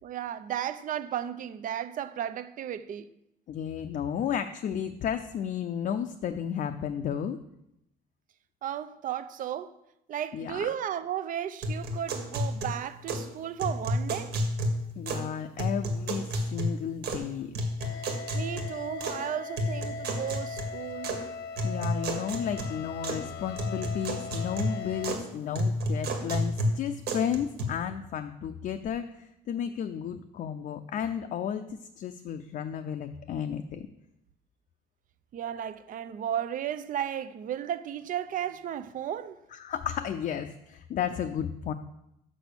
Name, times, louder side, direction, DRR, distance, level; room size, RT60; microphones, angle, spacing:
voice 1, 0.0-3.1 8.6-9.7 10.1-14.3 18.3-21.1 35.3-39.4, right 10 dB, 55° right, 0.6 m, -34 dB
voice 2, 3.5-7.4 10.3-10.7 15.0-17.5 21.6-33.9 39.5-41.7, left 8 dB, 50° left, 0.5 m, -33 dB
sound 1, 11.6-13.3 13.6-15.3 15.6-17.3 17.6-19.2 19.6-21.2 21.6-23.3 23.6-25.3 25.6-27.6, equal, 75° right, 1.7 m, -31 dB
sound 2, 17.8-25.1, left 5 dB, 85° left, 0.8 m, -39 dB
6.2 x 5.8 x 6.7 m
cardioid pair, 110°, 17 cm